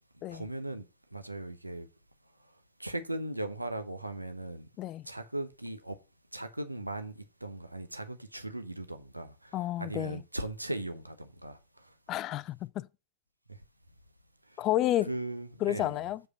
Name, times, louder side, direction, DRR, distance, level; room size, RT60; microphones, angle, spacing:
voice 1, 0.3-0.8 1.1-1.9 2.8-4.7 5.1-6.0 6.3-11.6 15.0-16.0, right 1 dB, 85° right, 0.9 m, -38 dB
voice 2, 9.5-10.2 12.1-12.9 14.6-15.1 15.6-16.2, left 14 dB, 35° left, 0.4 m, -30 dB
7.7 x 4.9 x 5.2 m
figure-of-eight pair, 95°, 0 cm